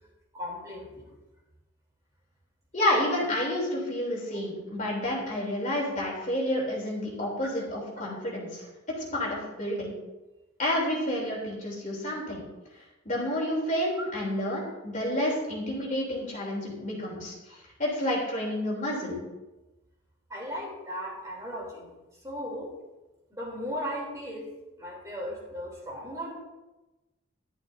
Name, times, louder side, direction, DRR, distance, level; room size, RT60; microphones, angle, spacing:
voice 1, 0.3-1.1 14.0-14.1 20.3-21.9 22.2-22.7 23.3-24.5 24.8-26.3, equal, 15° right, -4 dB, 3.3 m, -36 dB
voice 2, 2.7-8.7 8.9-9.9 10.6-12.4 13.0-19.2, left 1 dB, 35° left, -3 dB, 3.2 m, -30 dB
13.5 x 11.5 x 2.7 m, 1.1 s
head